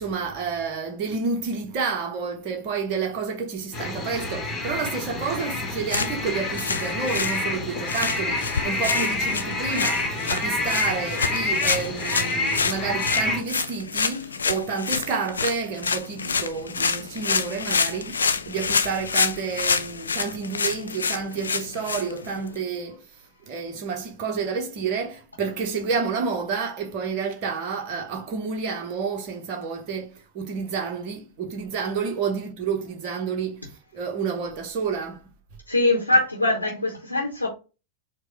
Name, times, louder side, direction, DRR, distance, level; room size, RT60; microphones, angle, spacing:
voice 1, 0.0-35.2, right 5 dB, 40° right, 0.9 m, -30 dB
sound 1, 3.7-13.4, left 2 dB, 25° left, 1.1 m, -28 dB
sound 2, 5.8-22.6, left 5 dB, 75° left, 0.3 m, -28 dB
voice 2, 35.7-37.5, left 2 dB, 90° left, 0.9 m, -22 dB
4.6 x 2.2 x 4.6 m
figure-of-eight pair, 90°, 0 cm